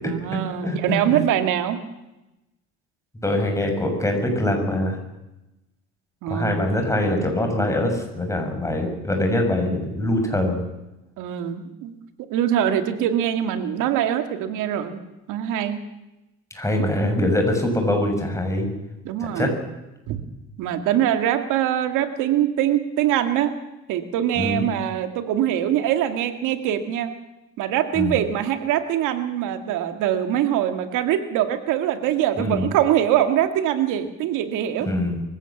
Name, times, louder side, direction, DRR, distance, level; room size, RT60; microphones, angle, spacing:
voice 1, 0.0-1.8 6.2-6.7 11.2-11.9 12.3-15.0 15.3-15.8 16.8-16.9 19.0-19.6 20.1-20.2 20.6-23.5 23.9-27.1 27.6-34.9, right 11 dB, 80° right, 8 dB, 2.3 m, -23 dB
voice 2, 0.6-1.2 3.2-5.0 6.3-10.6 16.5-18.7 19.2-19.5 24.4-24.6 27.9-28.2 32.4-32.7 34.8-35.2, left 1 dB, 10° left, 3 dB, 6.5 m, -23 dB
23.5 x 16.5 x 7.3 m, 0.96 s
supercardioid pair, 90°, 30 cm